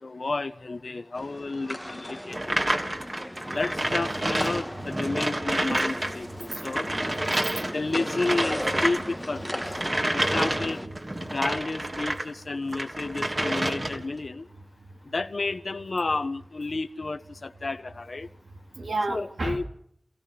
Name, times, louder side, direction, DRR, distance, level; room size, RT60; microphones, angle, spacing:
voice 1, 0.0-2.8 3.5-6.9 7.6-9.8 10.1-10.8 11.2-14.5 15.0-18.3 19.1-19.7, left 3 dB, 70° left, 10 dB, 1.3 m, -31 dB
sound 1, 1.2-10.9, equal, 5° left, 1.4 m, -37 dB
sound 2, 2.3-12.3 12.7-14.1, right 1 dB, 35° right, 3.3 m, -29 dB
voice 2, 5.7-6.4 6.9-7.6 8.7-8.8 9.9-10.4 11.2-11.3 18.7-19.6, right 2 dB, 85° right, 3 dB, 3.5 m, -34 dB
29.5 x 17.5 x 6.2 m, 0.70 s
wide cardioid pair, 70°, 0 cm